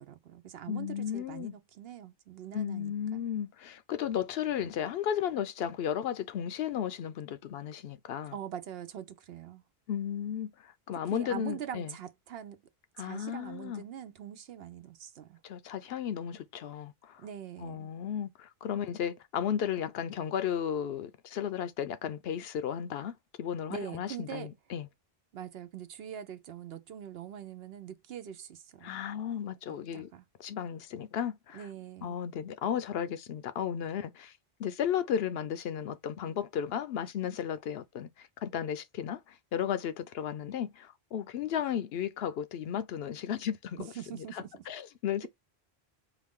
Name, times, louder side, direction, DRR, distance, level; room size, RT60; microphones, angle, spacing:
voice 1, 0.0-3.2 8.3-9.6 11.1-12.6 13.0-15.4 17.2-17.9 23.7-24.5 25.3-29.0 29.9-30.2 31.5-32.2 43.8-44.6, right 9 dB, 75° right, 0.8 m, -43 dB
voice 2, 0.7-1.5 2.5-8.4 9.9-12.0 13.0-13.8 15.4-17.2 17.6-24.9 28.8-30.1 30.4-31.7 32.0-34.3 34.6-45.3, left 9 dB, 75° left, 0.8 m, -34 dB
4.8 x 2.5 x 3.6 m
omnidirectional pair, 1.1 m